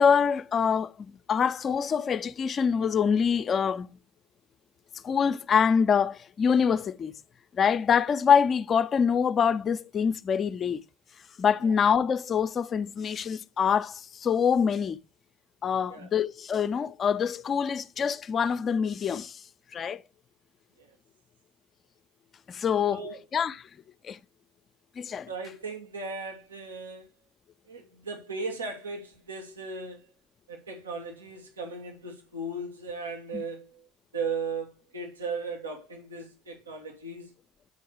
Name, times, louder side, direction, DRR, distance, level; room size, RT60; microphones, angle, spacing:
voice 1, 0.0-4.0 5.0-7.1 7.5-10.8 11.4-15.0 15.6-19.4 19.7-20.0 22.5-23.0 23.3-23.5 24.0-24.2 25.0-25.3 33.3-33.4, left 7 dB, 35° left, 0.7 m, -25 dB
voice 2, 22.9-23.2 25.3-27.1 27.7-30.0 30.5-33.9 34.1-37.3, right 4 dB, 85° right, 1.7 m, -37 dB
9.5 x 4.6 x 4.6 m
hypercardioid pair, 70°, 0 cm